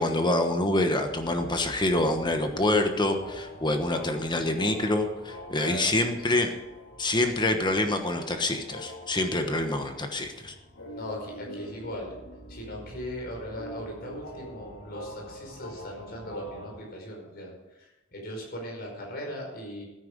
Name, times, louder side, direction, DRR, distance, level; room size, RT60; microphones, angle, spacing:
voice 1, 0.0-6.5 7.0-10.5, left 2 dB, 20° left, 6 dB, 1.1 m, -26 dB
sound 1, 1.0-16.8, equal, 80° left, 2.9 m, -44 dB
voice 2, 5.5-6.4 10.9-12.2 12.5-19.8, equal, 50° left, 0 dB, 5.1 m, -39 dB
16.0 x 9.9 x 5.2 m, 1.0 s
head